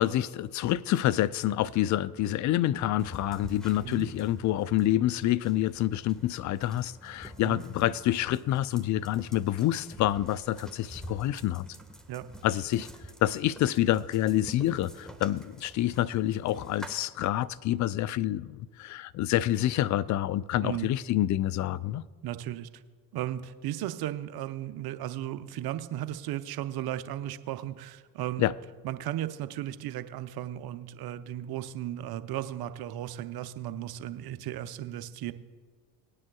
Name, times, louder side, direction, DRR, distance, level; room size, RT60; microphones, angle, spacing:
voice 1, 0.0-11.7 12.4-12.9 13.2-22.0 28.4-28.5, left 13 dB, 40° left, 0.5 m, -27 dB
sound 1, 3.0-16.9, right 1 dB, ahead, 1.5 m, -48 dB
voice 2, 20.6-20.9 22.2-22.8 23.1-28.5 28.8-35.3, right 12 dB, 50° right, 0.8 m, -35 dB
20.0 x 9.8 x 2.3 m
hypercardioid pair, 60°, 47 cm